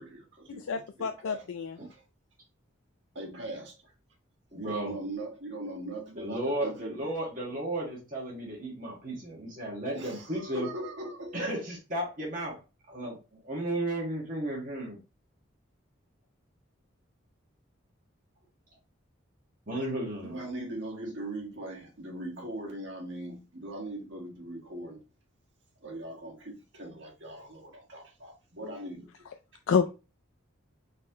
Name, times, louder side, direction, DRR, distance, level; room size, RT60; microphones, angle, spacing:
voice 1, 0.0-1.5 1.8-2.0 3.1-3.9 4.6-7.0 9.9-11.5 20.2-25.0 25.8-29.2, right 1 dB, 60° right, 1.6 m, -40 dB
voice 2, 0.7-1.7 29.7-29.9, left 6 dB, 80° left, 0.4 m, -28 dB
voice 3, 4.5-5.0 6.2-10.7 11.3-12.6 12.9-15.0 19.7-20.4, right 1 dB, 40° right, 1.5 m, -34 dB
4.2 x 4.1 x 2.8 m
head